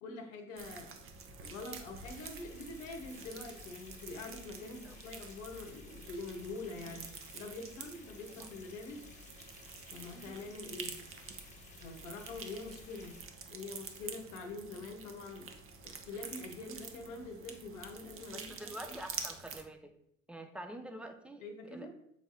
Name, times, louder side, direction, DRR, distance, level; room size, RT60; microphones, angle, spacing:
voice 1, 0.0-0.9 1.4-9.0 9.9-11.0 11.8-13.2 13.5-15.5 15.8-19.0 21.4-21.9, left 3 dB, 65° left, 4 dB, 1.0 m, -45 dB
sound 1, 0.6-19.6, right 5 dB, 35° right, 0.8 m, -48 dB
sound 2, 2.0-13.2, left 3 dB, 20° left, 1.3 m, -55 dB
voice 2, 18.3-19.9 20.3-21.9, right 1 dB, 5° right, 6 dB, 0.5 m, -47 dB
7.0 x 4.0 x 3.7 m, 0.76 s
figure-of-eight pair, 65°, 39 cm